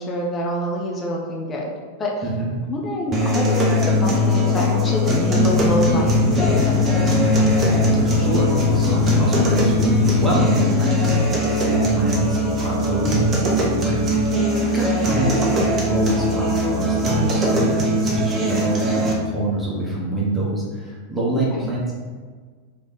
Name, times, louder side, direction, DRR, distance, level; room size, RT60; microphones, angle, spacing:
voice 1, 0.0-1.7 2.0-2.1 2.7-7.3 14.7-15.0 21.5-21.7, left 1 dB, 25° left, -1 dB, 0.8 m, -26 dB
sound 1, 3.1-19.1, left 1 dB, 25° right, 0.8 m, -20 dB
sound 2, 5.3-10.4, equal, 80° right, 0.9 m, -26 dB
voice 2, 8.0-21.9, right 2 dB, 10° right, -6 dB, 1.2 m, -25 dB
3.6 x 3.4 x 4.0 m, 1.5 s
figure-of-eight pair, 90°, 0 cm